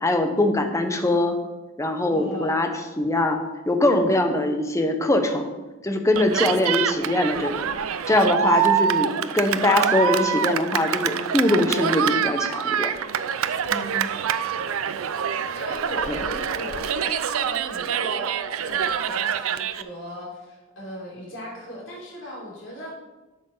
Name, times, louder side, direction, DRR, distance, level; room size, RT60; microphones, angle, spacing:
voice 1, 0.0-1.4 1.8-2.7 3.0-3.4 3.7-5.5 5.8-7.7 8.1-12.9 16.1-16.2, left 1 dB, 15° left, 5 dB, 0.9 m, -22 dB
voice 2, 2.1-2.7 13.7-14.2 15.5-22.9, left 1 dB, 60° left, -5 dB, 3.4 m, -37 dB
Cheering, 6.2-19.8, right 8 dB, 80° right, 0.5 m, -25 dB
8.1 x 6.1 x 5.5 m, 1.1 s
head